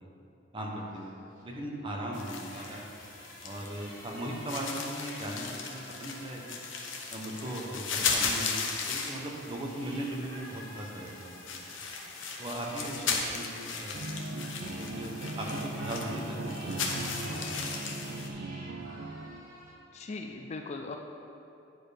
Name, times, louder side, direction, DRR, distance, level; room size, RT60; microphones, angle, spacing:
voice 1, 0.5-1.1 1.4-2.9 3.4-6.6 7.1-11.6 12.4-14.0 14.6-16.8 17.1-17.7 18.3-18.4, right 1 dB, 25° right, -1 dB, 1.0 m, -38 dB
sound 1, 0.7-19.7, right 1 dB, 45° right, 1.9 m, -51 dB
sound 2, 2.1-18.3, left 5 dB, 75° left, 0.9 m, -37 dB
voice 2, 12.8-13.3 19.9-21.0, left 3 dB, 35° left, 3 dB, 0.4 m, -40 dB
sound 3, 13.9-19.3, right 2 dB, 70° right, 0.6 m, -38 dB
9.5 x 4.4 x 5.1 m, 2.8 s
head